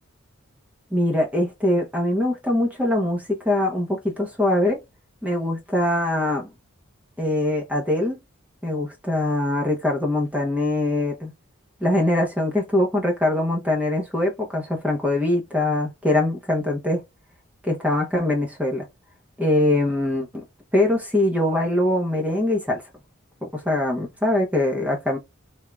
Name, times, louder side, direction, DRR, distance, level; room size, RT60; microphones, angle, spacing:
voice 1, 0.9-4.8 5.2-6.5 7.2-8.2 8.6-11.3 11.8-17.0 17.6-18.8 19.4-20.4 20.7-22.8 23.4-25.2, left 1 dB, 5° right, 0.8 m, -22 dB
3.6 x 3.3 x 2.3 m
head